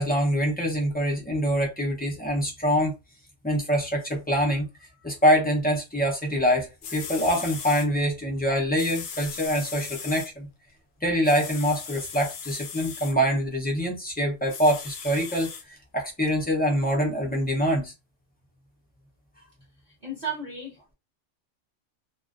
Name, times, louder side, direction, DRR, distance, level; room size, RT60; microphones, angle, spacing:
voice 1, 0.0-2.9 3.4-4.7 5.0-10.5 11.0-17.9, equal, 15° left, 0.3 m, -25 dB
sound 1, 6.5-6.6 6.8-7.9 8.8-10.3 11.2-13.1 14.5-15.6 16.3-16.4, left 6 dB, 65° left, 0.7 m, -38 dB
voice 2, 19.9-20.9, right 3 dB, 40° right, 0.7 m, -35 dB
2.4 x 2.1 x 2.4 m
omnidirectional pair, 1.2 m